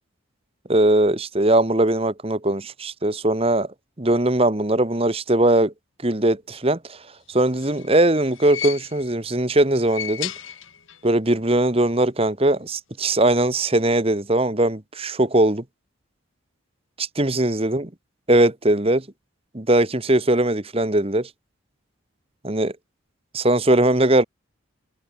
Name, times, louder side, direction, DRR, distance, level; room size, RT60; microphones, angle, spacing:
voice 1, 0.7-5.7 6.0-7.0 7.3-10.3 11.0-15.6 17.0-17.9 18.3-19.0 19.5-21.3 22.4-22.7 23.3-24.2, right 1 dB, 30° right, 1.5 m, -20 dB
sound 1, 7.3-9.2 9.7-11.1 11.4-11.5 12.6-12.7, left 10 dB, 75° left, 5.9 m, -35 dB
head